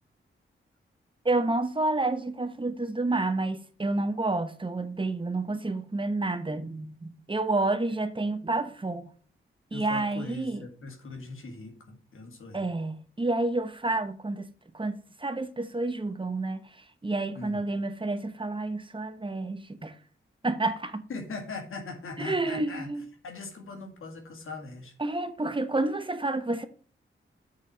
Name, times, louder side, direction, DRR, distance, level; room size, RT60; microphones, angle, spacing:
voice 1, 1.2-9.1 9.7-10.6 12.5-14.5 14.7-16.6 17.0-19.9 20.4-21.0 22.2-23.0 25.0-26.7, right 2 dB, 25° right, 1.0 m, -29 dB
voice 2, 9.7-12.7 17.3-17.6 21.1-22.9 23.2-24.9, left 3 dB, 85° left, 1.9 m, -40 dB
7.5 x 4.2 x 6.1 m
cardioid pair, 65°, 21 cm